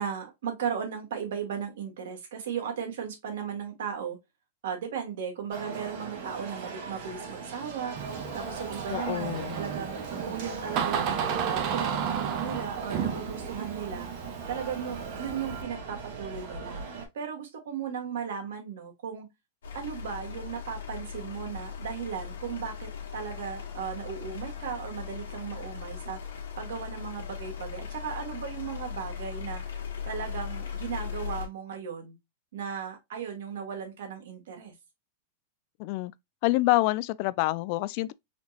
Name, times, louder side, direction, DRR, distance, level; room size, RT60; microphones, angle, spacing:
voice 1, 0.0-4.2 4.6-8.0 8.3-11.2 11.5-14.1 14.5-16.8 17.1-19.3 19.7-29.6 30.0-32.2 32.5-34.7, right 7 dB, 75° right, 1.7 m, -36 dB
sound 1, 5.5-17.1, right 4 dB, 60° right, 1.7 m, -39 dB
Door, 8.0-15.6, right 8 dB, 40° right, 0.9 m, -33 dB
voice 2, 8.9-9.6 35.8-36.1 36.4-38.1, left 19 dB, 50° left, 0.3 m, -27 dB
sound 2, 19.6-31.5, left 7 dB, 85° left, 1.3 m, -38 dB
4.3 x 2.9 x 2.8 m
supercardioid pair, 135°, 0 cm